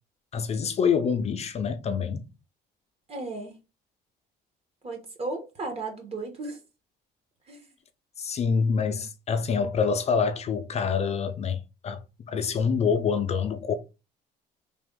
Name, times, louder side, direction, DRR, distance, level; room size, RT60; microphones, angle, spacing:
voice 1, 0.3-2.3 8.2-13.8, left 6 dB, 40° left, 0.5 m, -26 dB
voice 2, 3.1-3.6 4.8-6.6 7.4-7.7, right 3 dB, 35° right, 1.3 m, -35 dB
3.4 x 2.4 x 3.7 m
cardioid pair, 110°, 17 cm